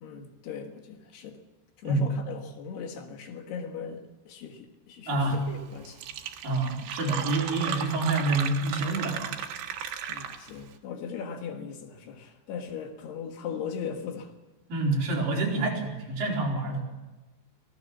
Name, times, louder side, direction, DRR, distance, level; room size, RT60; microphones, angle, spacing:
voice 1, 0.0-1.4 1.8-6.0 7.2-7.3 10.1-14.3, left 6 dB, 70° left, 5 dB, 3.5 m, -39 dB
voice 2, 5.1-5.4 6.4-9.4 14.7-17.0, right 2 dB, 55° right, -2 dB, 5.9 m, -27 dB
Fill (with liquid), 5.5-5.6 5.9-10.6, right 8 dB, 80° right, 3.7 m, -35 dB
26.0 x 17.5 x 7.2 m, 1.1 s
omnidirectional pair, 5.0 m